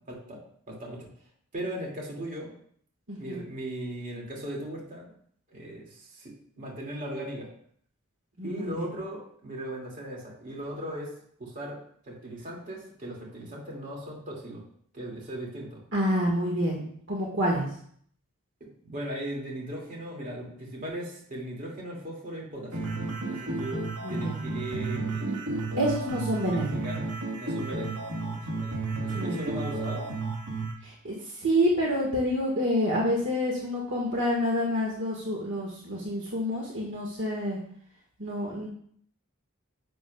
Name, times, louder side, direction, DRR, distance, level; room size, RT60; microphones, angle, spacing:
voice 1, 0.1-1.1 1.5-2.5 3.2-5.1 5.5-7.5 8.4-14.6 14.9-15.8 18.6-22.9 23.3-25.5 26.5-27.0 27.4-30.1, right 1 dB, 40° right, -2 dB, 2.4 m, -38 dB
voice 2, 3.1-3.4 8.4-8.9 15.9-16.8 17.1-17.7 24.0-24.4 25.8-26.8 29.1-29.5 30.8-37.6 38.2-38.7, equal, 60° right, -2 dB, 1.7 m, -28 dB
sound 1, 22.7-30.7, right 3 dB, 90° right, 1.6 m, -32 dB
10.5 x 7.7 x 2.3 m, 0.62 s
head